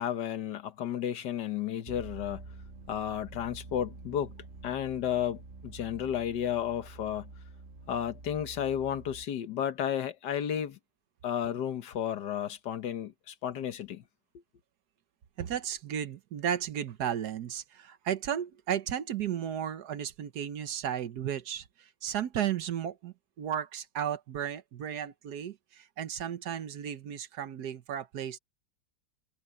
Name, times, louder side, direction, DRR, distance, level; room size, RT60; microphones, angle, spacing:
voice 1, 0.0-2.4 2.9-4.3 4.6-7.3 7.9-10.8 11.2-14.0, left 9 dB, 75° left, 1.7 m, -32 dB
sound 1, 1.9-9.3, right 3 dB, 40° right, 1.8 m, -48 dB
voice 2, 15.4-28.4, right 9 dB, 70° right, 1.4 m, -34 dB
omnidirectional pair, 1.9 m